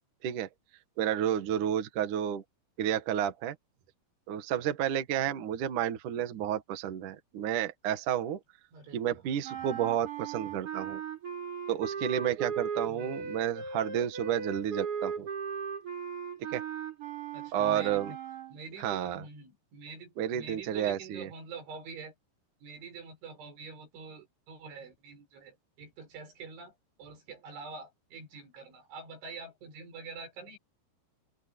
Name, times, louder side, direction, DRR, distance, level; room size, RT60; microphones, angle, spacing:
voice 1, 1.0-2.4 2.8-3.6 4.3-8.4 8.9-11.0 11.7-15.3 16.5-16.6 17.5-18.1 18.8-19.3 20.2-21.3, right 10 dB, 55° right, 2.7 m, -31 dB
voice 2, 8.7-9.2 12.8-13.2 17.3-18.2 18.5-22.1 22.6-26.7 27.0-30.6, right 4 dB, 90° right, 8.9 m, -46 dB
sound 1, 9.4-18.6, right 6 dB, 30° right, 6.4 m, -37 dB
open air
omnidirectional pair, 5.3 m